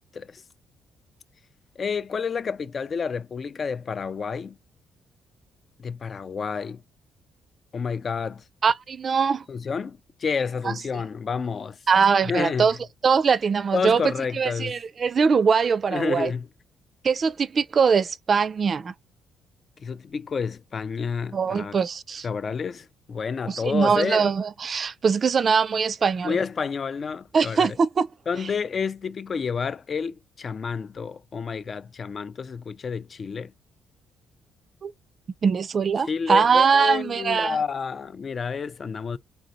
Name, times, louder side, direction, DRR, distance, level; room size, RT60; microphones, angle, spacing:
voice 1, 1.8-4.6 5.8-6.8 7.7-8.4 9.5-11.8 12.2-12.8 13.7-14.8 15.9-16.5 19.8-21.8 22.2-24.3 26.2-27.8 28.3-33.5 36.1-39.2, left 5 dB, 50° left, 0.4 m, -29 dB
voice 2, 8.6-9.4 10.6-10.7 11.9-12.7 13.0-14.0 14.3-16.3 17.0-18.9 21.3-22.3 23.5-26.4 27.3-28.1 34.8-34.9 35.4-37.6, right 5 dB, 50° right, 0.4 m, -22 dB
3.9 x 3.3 x 2.5 m
supercardioid pair, 60°, 0 cm